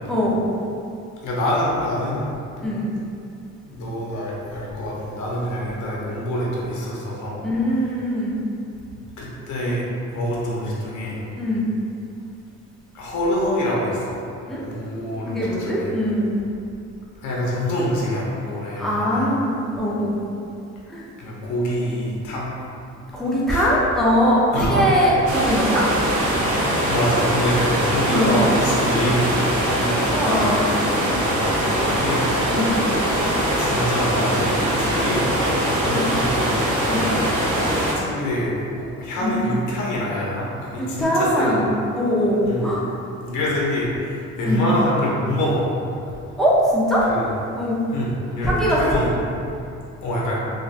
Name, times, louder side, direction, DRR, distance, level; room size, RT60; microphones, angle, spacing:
voice 1, 0.1-0.5 2.6-2.9 7.4-8.4 11.4-11.6 14.5-14.6 15.3-16.3 18.8-20.2 20.9-21.0 23.1-25.8 28.1-28.3 29.7-29.8 30.1-30.7 31.7-32.0 32.5-32.8 35.8-36.0 36.9-37.0 39.2-39.3 40.8-41.6 41.9-42.8 44.4-44.6 46.4-47.0 47.6-47.8 48.4-49.0, equal, ahead, -7 dB, 0.6 m, -21 dB
voice 2, 1.2-2.2 3.7-7.4 9.2-11.2 12.9-14.2 14.7-15.9 17.2-19.3 21.2-22.5 23.5-23.7 24.5-25.0 26.8-30.5 31.1-32.2 33.6-34.5 34.8-41.7 42.4-42.7 43.2-45.7 47.1-47.3 47.9-49.1 50.0-50.4, equal, 75° left, -5 dB, 0.7 m, -26 dB
sound 1, 25.3-37.9, equal, 75° right, 0.7 m, -22 dB
2.9 x 2.3 x 2.4 m, 2.6 s
cardioid pair, 90°, 30 cm